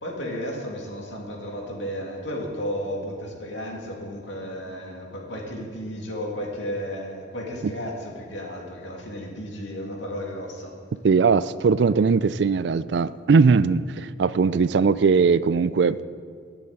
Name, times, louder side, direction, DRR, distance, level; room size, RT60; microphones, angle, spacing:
voice 1, 0.0-10.7, equal, 90° left, -1 dB, 2.4 m, -33 dB
voice 2, 11.0-16.0, right 5 dB, 65° right, 16 dB, 0.4 m, -20 dB
11.5 x 7.1 x 8.8 m, 2.1 s
head